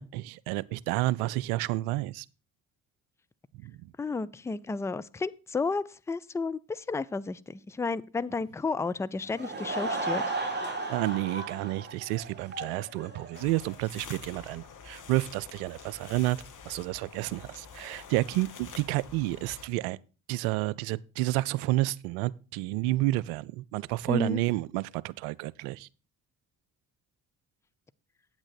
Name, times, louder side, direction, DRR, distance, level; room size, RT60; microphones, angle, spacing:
voice 1, 0.0-2.3 3.6-3.8 10.9-16.4 16.7-20.0 20.3-25.9, right 18 dB, 75° right, 0.5 m, -30 dB
voice 2, 4.0-10.2 24.1-24.4, left 4 dB, 5° left, 0.4 m, -32 dB
Laughter / Crowd, 9.2-13.7, right 3 dB, 25° right, 3.3 m, -35 dB
sound 1, 13.3-19.7, left 6 dB, 45° left, 1.8 m, -47 dB
8.8 x 8.7 x 4.0 m
hypercardioid pair, 50°, 44 cm